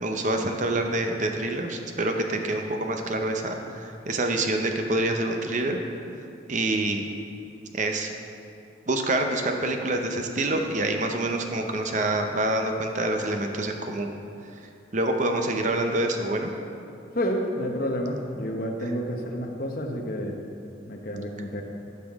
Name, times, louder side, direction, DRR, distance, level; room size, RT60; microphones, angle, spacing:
voice 1, 0.0-5.8 6.5-7.1 7.7-8.1 8.9-14.1 14.9-16.5, right 2 dB, 40° right, 4 dB, 0.7 m, -26 dB
voice 2, 17.1-20.4 20.9-21.6, equal, 50° left, 2 dB, 1.0 m, -29 dB
15.0 x 5.8 x 3.6 m, 2.6 s
head